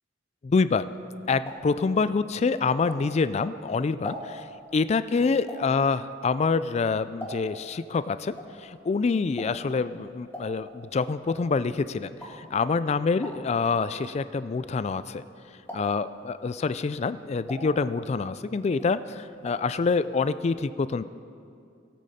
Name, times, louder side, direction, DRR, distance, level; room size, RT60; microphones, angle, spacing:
voice 1, 0.4-0.8 1.3-4.5 4.7-15.2 15.7-21.0, left 4 dB, 35° left, 14 dB, 0.3 m, -26 dB
sound 1, 0.9-3.4 3.8-7.7 8.0-15.3 15.6-16.2 16.7-18.4 18.7-19.8 20.0-20.1 20.4-20.5, equal, 10° left, 1.6 m, -43 dB
17.5 x 8.4 x 4.2 m, 2.4 s
head